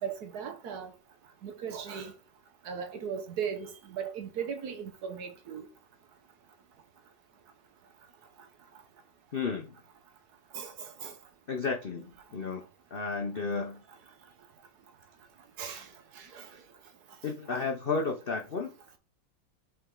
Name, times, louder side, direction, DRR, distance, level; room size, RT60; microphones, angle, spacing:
voice 1, 0.0-0.9 1.4-2.1 2.6-5.7 10.5-11.1 15.6-15.9 16.1-16.5, right 7 dB, 60° right, 1.2 m, -37 dB
voice 2, 9.3-9.8 11.5-12.6 12.9-13.8 17.2-18.7, left 4 dB, 65° left, 0.5 m, -32 dB
5.8 x 4.3 x 3.8 m
omnidirectional pair, 2.1 m